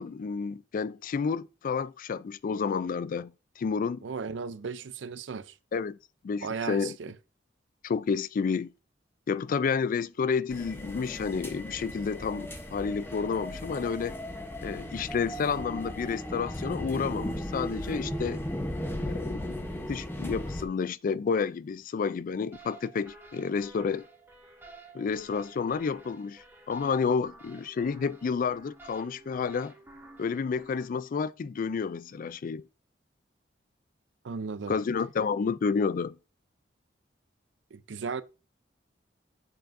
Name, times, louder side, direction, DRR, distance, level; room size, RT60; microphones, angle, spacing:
voice 1, 0.0-4.0 5.7-6.0 6.2-7.0 7.8-8.7 9.3-14.2 14.6-18.4 19.0-24.0 24.9-29.7 30.2-32.6 34.7-36.2, left 5 dB, 50° left, 0.3 m, -30 dB
voice 2, 4.0-5.5 6.4-7.1 34.2-34.8 37.7-38.2, right 5 dB, 85° right, 0.5 m, -35 dB
sound 1, 10.5-20.6, equal, 15° left, 0.8 m, -36 dB
sound 2, 22.5-30.9, right 2 dB, 15° right, 1.4 m, -51 dB
7.6 x 7.2 x 2.6 m
head